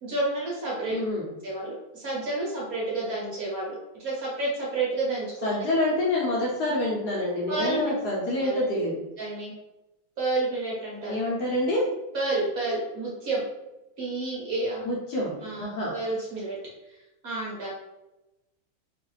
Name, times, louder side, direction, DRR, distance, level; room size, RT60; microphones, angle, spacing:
voice 1, 0.0-1.0 1.4-5.7 7.5-7.9 8.4-8.8 9.2-9.5 10.2-11.2 12.1-13.4 14.0-14.8 15.4-16.6 17.2-17.7, right 2 dB, 60° right, -5 dB, 1.0 m, -30 dB
voice 2, 0.9-1.3 5.4-9.0 11.1-11.9 14.8-15.9, left 1 dB, 65° left, -4 dB, 1.1 m, -27 dB
3.1 x 2.4 x 3.1 m, 0.96 s
omnidirectional pair, 2.1 m